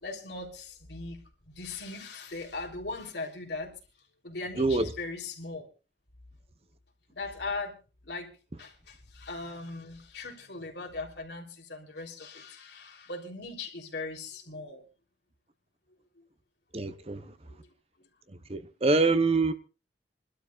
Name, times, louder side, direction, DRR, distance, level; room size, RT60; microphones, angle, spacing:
voice 1, 0.0-1.2 1.5-3.8 4.2-5.7 7.1-7.8 8.0-8.3 8.6-14.8 16.2-16.3 16.9-17.7 18.0-18.1, left 3 dB, 80° left, 3.5 m, -39 dB
voice 2, 4.6-4.9 16.7-17.3 18.3-19.5, right 3 dB, 35° right, 0.8 m, -26 dB
28.5 x 12.5 x 2.4 m
head